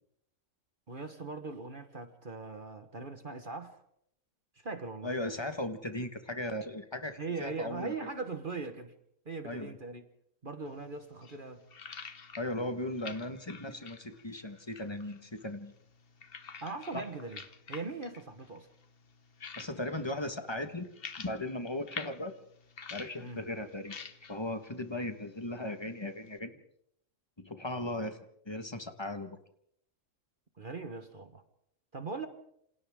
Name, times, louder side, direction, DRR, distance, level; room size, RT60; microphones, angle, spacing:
voice 1, 0.9-3.8 4.5-5.1 7.2-8.9 9.2-10.0 10.4-11.6 16.6-17.4 17.7-18.7 23.2-23.4 30.6-31.4 31.9-32.3, right 4 dB, 45° right, 7 dB, 1.4 m, -40 dB
voice 2, 5.0-7.9 9.4-9.8 12.4-15.7 16.9-17.0 19.6-20.9 21.2-22.3 22.9-23.9 24.3-26.6 27.4-28.2 28.4-29.4, left 1 dB, 20° left, 8 dB, 1.5 m, -37 dB
sound 1, 10.7-26.4, left 6 dB, 50° left, 1.3 m, -50 dB
28.0 x 26.5 x 3.7 m, 0.72 s
omnidirectional pair, 1.3 m